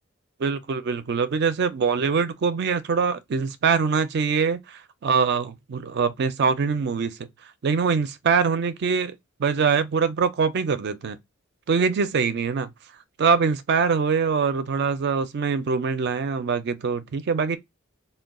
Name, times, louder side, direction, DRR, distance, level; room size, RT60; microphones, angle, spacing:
voice 1, 0.4-7.3 7.6-11.2 11.7-12.7 13.2-17.6, right 5 dB, 55° right, 0.4 m, -23 dB
2.3 x 2.1 x 3.5 m
head